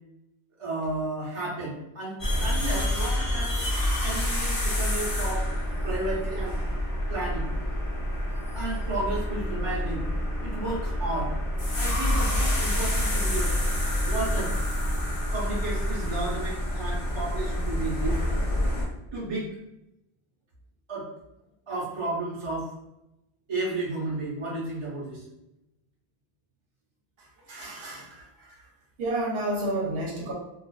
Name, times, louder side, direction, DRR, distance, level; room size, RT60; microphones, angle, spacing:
voice 1, 0.6-3.7 4.0-5.5 5.8-6.6 7.1-7.5 8.5-10.1 10.4-11.4 11.7-13.5 14.0-14.5 15.3-18.2 19.1-19.5 20.9-21.1 21.7-22.7 23.5-25.2, right 2 dB, 30° right, -9 dB, 0.7 m, -33 dB
sound 1, 2.2-18.8, left 1 dB, 40° left, 0.6 m, -27 dB
voice 2, 27.2-28.7 29.0-30.3, right 1 dB, 70° right, -2 dB, 0.9 m, -31 dB
2.4 x 2.3 x 2.2 m, 0.89 s
omnidirectional pair, 1.0 m